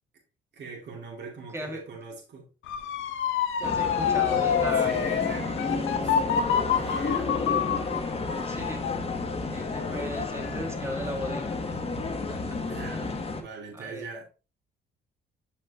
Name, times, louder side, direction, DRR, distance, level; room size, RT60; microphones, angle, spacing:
voice 1, 0.5-2.5 4.8-7.3 12.7-14.2, right 4 dB, 65° right, 2.3 m, -41 dB
Motor vehicle (road) / Siren, 2.7-11.6 12.0-12.4, left 9 dB, 80° left, 0.8 m, -28 dB
sound 1, 3.6-13.4, left 3 dB, 30° left, 1.3 m, -31 dB
voice 2, 3.6-4.9 8.4-8.9 9.5-11.8 12.1-12.6 13.7-14.1, equal, 15° right, 1.8 m, -37 dB
7.4 x 5.6 x 2.8 m
cardioid pair, 90°, 20 cm